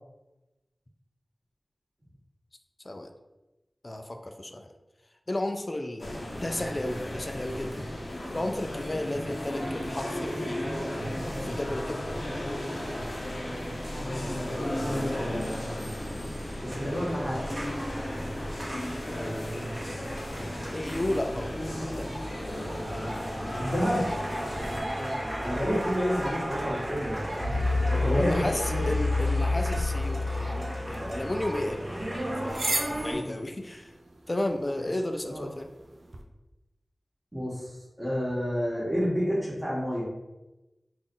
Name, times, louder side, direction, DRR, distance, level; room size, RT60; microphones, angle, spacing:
voice 1, 3.8-4.7 5.3-8.0 8.3-10.8 11.4-12.0 19.1-19.7 20.7-22.1 25.0-25.2 28.1-32.0 32.4-33.9 34.3-35.7, left 1 dB, 40° left, 5 dB, 0.3 m, -33 dB
sound 1, 6.0-24.8, left 1 dB, 75° left, 0.7 m, -35 dB
voice 2, 13.9-16.1 16.6-17.4 23.6-24.1 25.4-27.5 27.9-28.8 33.1-33.3 35.3-35.5 37.3-37.7 38.0-40.0, equal, 20° right, -6 dB, 1.3 m, -30 dB
sound 2, 16.7-33.1, left 1 dB, 40° right, 1.1 m, -32 dB
sound 3, 29.7-36.2, right 2 dB, 70° right, 0.4 m, -38 dB
3.8 x 2.4 x 3.7 m, 1.0 s
wide cardioid pair, 65°, 0 cm